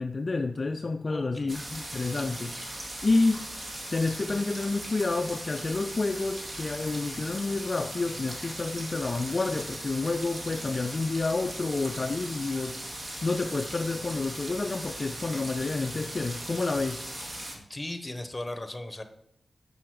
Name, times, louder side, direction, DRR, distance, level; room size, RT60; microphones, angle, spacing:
voice 1, 0.0-2.6 3.0-3.4 3.9-12.8 13.2-17.0, left 3 dB, 45° left, 6 dB, 0.4 m, -29 dB
voice 2, 1.1-1.6 17.5-19.0, left 1 dB, 20° left, 7 dB, 0.9 m, -37 dB
sound 1, 1.5-17.5, right 1 dB, 50° right, 2.1 m, -39 dB
6.9 x 6.0 x 4.8 m, 0.78 s
cardioid pair, 65°, 0 cm